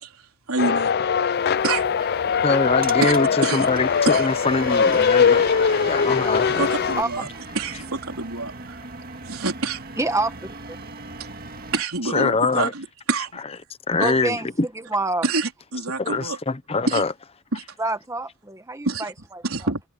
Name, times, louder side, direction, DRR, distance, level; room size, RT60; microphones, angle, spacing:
voice 1, 0.0-1.0 1.6-2.3 3.0-3.1 3.4-3.7 4.1-4.3 6.6-7.3 7.6-8.8 9.2-9.8 11.7-13.4 14.0-14.1 15.2-16.4 16.9-17.0 17.5-17.6 18.9-19.1 19.4-19.8, right 3 dB, 85° right, 4.0 m, -27 dB
sound 1, 0.6-7.0, left 6 dB, 50° left, 0.4 m, -21 dB
sound 2, 1.3-11.8, right 4 dB, 45° right, 2.0 m, -39 dB
voice 2, 2.4-5.4 5.8-6.7 12.1-12.7 13.9-14.4 16.0-17.1, left 3 dB, 30° left, 0.9 m, -23 dB
voice 3, 10.0-10.6 14.0-14.5 14.7-15.3 17.8-19.4, right 2 dB, 15° right, 1.3 m, -27 dB
head